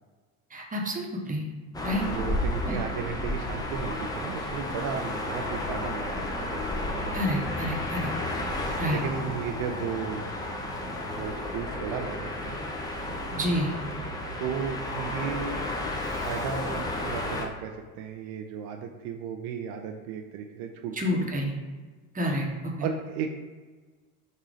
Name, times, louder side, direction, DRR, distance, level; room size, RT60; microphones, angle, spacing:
voice 1, 0.5-1.4 1.8-2.1 2.6-2.8 7.1-8.1 8.8-9.0 13.3-13.7 21.0-21.5 22.1-22.9, equal, 15° right, 0 dB, 1.0 m, -29 dB
sound 1, 1.7-17.5, left 1 dB, 10° left, 0.6 m, -32 dB
voice 2, 2.1-7.5 8.9-10.3 11.2-12.6 14.4-15.6 16.1-21.4 22.8-23.3, right 7 dB, 60° right, 4 dB, 0.6 m, -35 dB
3.9 x 2.7 x 4.7 m, 1.4 s
hypercardioid pair, 85°, 46 cm